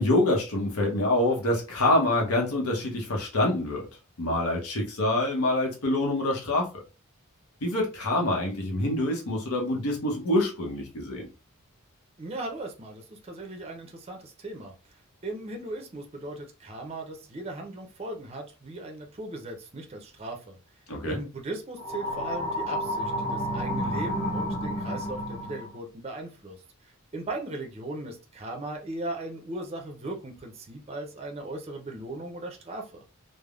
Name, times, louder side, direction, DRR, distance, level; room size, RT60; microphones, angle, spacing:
voice 1, 0.0-3.8 4.2-6.7 7.6-11.3 20.9-21.2, left 1 dB, 90° left, 0.8 m, -26 dB
voice 2, 12.2-14.7 15.2-20.6 21.1-26.6 27.1-33.0, right 2 dB, 30° right, 0.5 m, -38 dB
sound 1, 21.8-25.8, equal, 30° left, 0.6 m, -30 dB
3.3 x 2.0 x 2.3 m
head